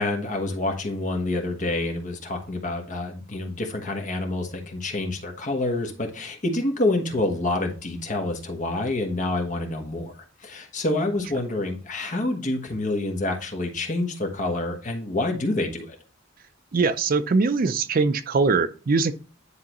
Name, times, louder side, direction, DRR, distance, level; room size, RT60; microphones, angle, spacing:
voice 1, 0.0-16.0, left 2 dB, 40° left, 1.2 m, -27 dB
voice 2, 16.7-19.1, right 4 dB, 50° right, 0.4 m, -22 dB
9.8 x 3.8 x 3.0 m
head